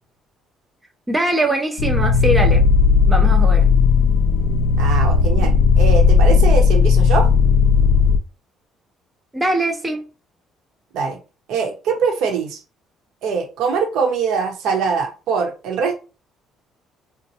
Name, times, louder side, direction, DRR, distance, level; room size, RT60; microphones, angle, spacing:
voice 1, 1.1-2.6 3.1-3.7 9.3-10.1, right 1 dB, 15° right, 0.5 m, -21 dB
sound 1, 1.8-8.2, left 5 dB, 80° left, 0.3 m, -15 dB
voice 2, 4.8-7.3 10.9-11.2 11.5-12.6 13.2-15.9, right 5 dB, 75° right, 0.9 m, -22 dB
4.3 x 2.1 x 2.7 m
cardioid pair, 120°, 0 cm